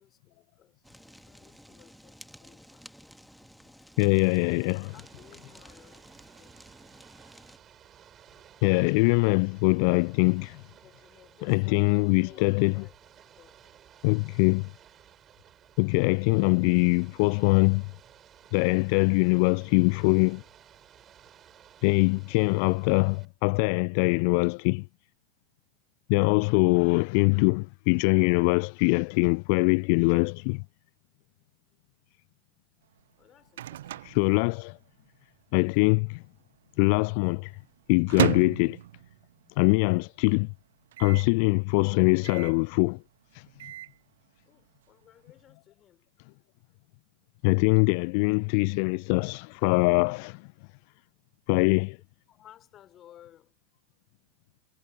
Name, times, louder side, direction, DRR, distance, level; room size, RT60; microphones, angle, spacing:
voice 1, 0.0-3.1 4.1-6.6 10.8-12.4 12.7-13.6 22.0-22.5 33.1-34.3 44.5-46.1 52.3-53.5, left 11 dB, 30° left, 5.4 m, -57 dB
Fire, 0.8-7.6, equal, ahead, 1.8 m, -53 dB
voice 2, 4.0-4.9 8.6-10.6 11.5-12.7 14.0-14.7 15.8-17.8 18.5-20.4 21.8-24.9 26.1-30.6 34.0-34.8 35.5-36.2 36.8-37.5 37.9-38.8 39.6-40.5 41.0-43.0 43.3-43.5 47.4-50.4 51.5-52.0, left 35 dB, 45° left, 0.4 m, -23 dB
Ocean / Boat Water vehicle, 4.9-23.3, right 10 dB, 25° right, 5.7 m, -56 dB
Microwave oven, 32.9-35.1 35.4-35.5 35.7-36.3 36.8-39.5 39.9-40.0 40.2-40.3 40.9-41.4 42.2-42.7 43.3-44.0, right 13 dB, 60° right, 0.8 m, -34 dB
figure-of-eight pair, 90°, 0 cm